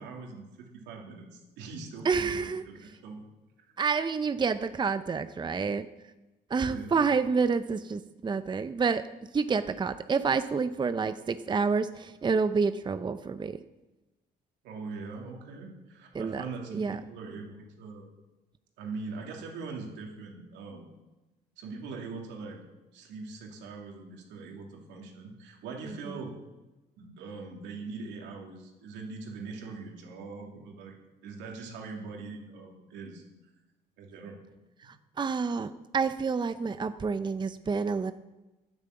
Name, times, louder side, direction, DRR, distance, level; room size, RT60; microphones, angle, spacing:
voice 1, 0.0-3.2 6.6-7.0 14.6-18.1 18.8-20.9 21.6-22.6 22.9-26.3 27.0-30.9 31.2-33.2 34.0-34.4, right 4 dB, 80° right, 0 dB, 2.8 m, -42 dB
voice 2, 2.0-2.6 3.8-5.9 6.5-9.0 9.3-13.6 16.1-16.4 16.7-17.0 25.9-26.0 34.8-38.1, right 5 dB, 25° right, 11 dB, 0.6 m, -28 dB
9.7 x 8.9 x 7.8 m, 1.1 s
supercardioid pair, 75°, 18 cm